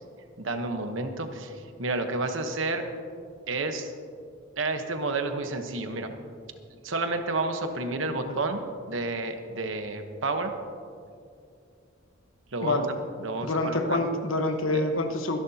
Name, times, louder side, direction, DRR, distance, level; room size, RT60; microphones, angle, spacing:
voice 1, 0.4-2.9 3.5-3.9 4.6-6.2 6.8-10.5 12.5-12.8 13.2-14.0 14.7-14.8, right 3 dB, 70° right, 6 dB, 1.1 m, -30 dB
voice 2, 13.4-15.4, left 2 dB, 90° left, 5 dB, 1.2 m, -26 dB
24.5 x 11.0 x 2.9 m, 2.4 s
head